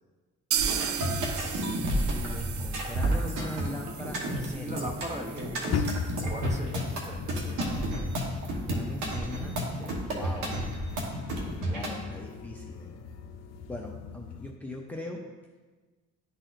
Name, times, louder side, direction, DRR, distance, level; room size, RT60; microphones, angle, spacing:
sound 1, 0.5-8.2 8.5-8.6 8.9-9.0 9.5-9.6, right 8 dB, 50° right, 0.5 m, -37 dB
sound 2, 0.6-11.9, right 1 dB, 85° right, 1.2 m, -31 dB
voice 1, 1.9-4.8 8.4-10.5 11.7-12.9 13.7-15.2, left 1 dB, 5° left, 0 dB, 0.6 m, -40 dB
voice 2, 4.4-5.9 6.2-7.6, equal, 25° right, 3 dB, 0.9 m, -39 dB
sound 3, 5.7-14.5, left 6 dB, 60° left, 0.5 m, -38 dB
11.0 x 4.1 x 2.5 m, 1.3 s
cardioid pair, 90°, 30 cm